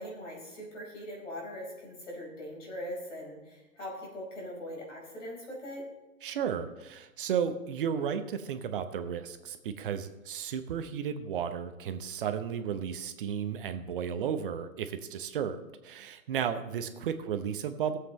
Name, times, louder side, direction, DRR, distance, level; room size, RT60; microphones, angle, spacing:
voice 1, 0.0-5.9 16.9-17.3, equal, 60° left, -1 dB, 4.6 m, -41 dB
voice 2, 6.2-18.0, right 8 dB, 40° right, 9 dB, 0.9 m, -33 dB
18.0 x 7.9 x 3.1 m, 1.1 s
figure-of-eight pair, 120°, 42 cm